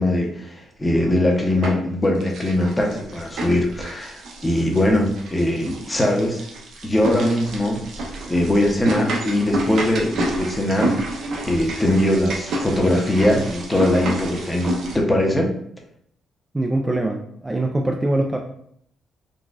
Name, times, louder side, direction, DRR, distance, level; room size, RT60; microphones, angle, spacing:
voice 1, 0.0-6.4 6.8-7.9 8.3-11.2 11.5-15.5, left 1 dB, 15° left, 1 dB, 0.7 m, -21 dB
sound 1, 1.0-1.9 2.2-15.0, right 1 dB, 70° right, 0.7 m, -29 dB
voice 2, 16.5-18.4, right 1 dB, 15° right, 1 dB, 0.3 m, -23 dB
4.0 x 2.3 x 2.4 m, 0.67 s
cardioid pair, 90°, 0 cm